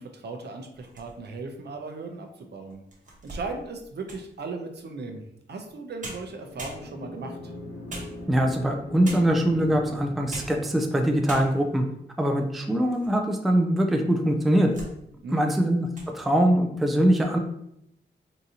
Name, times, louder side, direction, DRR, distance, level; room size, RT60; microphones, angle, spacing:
voice 1, 0.0-2.8 3.2-5.2 5.5-7.5 15.2-15.6, right 3 dB, 65° right, 4 dB, 0.6 m, -37 dB
sound 1, 0.7-1.5 2.1-2.2 2.7-4.4 5.7-5.8 6.0-7.2 7.9-8.6 9.0-9.5 10.1-10.7 10.9-11.0 11.3-11.8 12.4-13.2 13.5-13.6 14.3-15.0 15.3-15.5 15.8-16.1, right 1 dB, 45° right, 0.9 m, -42 dB
sound 2, 6.1-11.1, left 1 dB, 70° left, 1.1 m, -41 dB
voice 2, 8.3-11.8 12.2-14.7 15.3-17.4, right 1 dB, ahead, 3 dB, 0.3 m, -23 dB
3.8 x 2.6 x 2.8 m, 0.77 s
wide cardioid pair, 120°, 19 cm